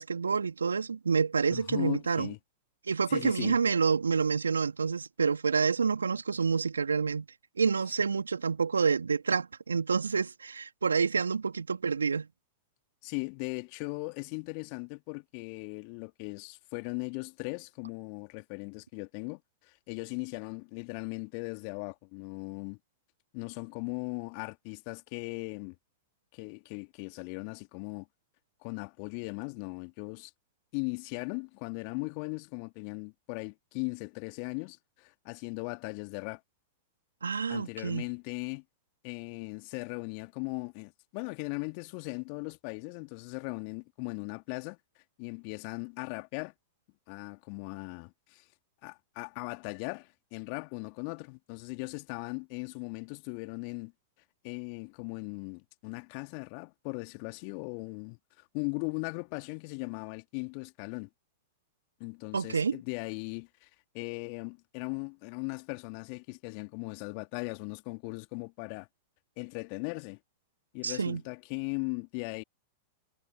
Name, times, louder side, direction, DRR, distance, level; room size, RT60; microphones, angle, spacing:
voice 1, 0.0-2.3 2.9-7.3 7.6-12.3 37.2-38.0 62.3-62.8 70.8-71.2, right 5 dB, 80° right, 2.7 m, -28 dB
voice 2, 1.5-2.4 3.1-3.6 13.0-22.8 23.3-25.8 26.3-28.1 28.6-30.3 30.7-36.4 37.5-38.6 39.0-44.8 45.2-46.5 47.1-48.4 48.8-53.9 54.4-61.1 62.0-63.7 63.9-68.9 69.4-70.2 70.7-72.4, left 37 dB, 50° left, 2.6 m, -38 dB
figure-of-eight pair, 95°, 0 cm